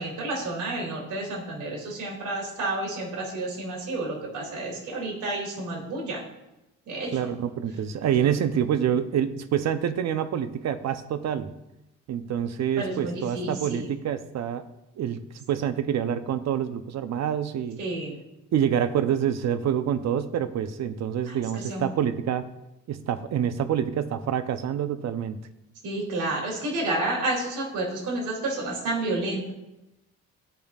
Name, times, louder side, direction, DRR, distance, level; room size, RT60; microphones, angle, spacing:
voice 1, 0.0-6.2 6.9-7.3 8.2-8.3 12.8-13.9 17.8-18.2 21.2-21.4 21.7-21.9 25.8-29.5, right 2 dB, 80° right, -3 dB, 3.0 m, -30 dB
voice 2, 7.1-11.5 12.1-14.6 15.0-15.2 15.5-17.8 18.5-22.5 22.9-25.4, right 9 dB, 60° right, 11 dB, 0.7 m, -27 dB
14.0 x 5.3 x 2.4 m, 0.94 s
cardioid pair, 90°, 30 cm